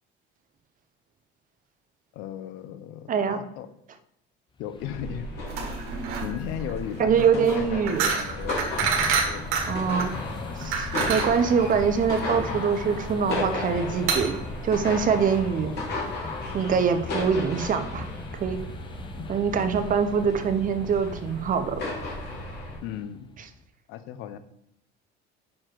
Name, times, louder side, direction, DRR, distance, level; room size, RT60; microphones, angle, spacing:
voice 1, 2.1-3.7 4.6-5.3 6.2-8.6 9.3-9.5 22.8-23.3 23.9-24.4, left 10 dB, 75° left, 12 dB, 0.7 m, -36 dB
voice 2, 3.1-3.4 7.0-8.1 9.7-10.1 10.6-14.4 14.6-15.7 16.5-18.1 18.4-18.6 19.3-21.8, right 6 dB, 40° right, 9 dB, 0.8 m, -24 dB
sound 1, 4.6-23.6, left 3 dB, 25° left, 0.7 m, -41 dB
sound 2, 4.8-22.8, left 2 dB, 55° left, 2.8 m, -35 dB
sound 3, 5.5-15.5, right 5 dB, 80° right, 1.4 m, -29 dB
6.1 x 4.5 x 4.6 m, 0.78 s
cardioid pair, 110°, 21 cm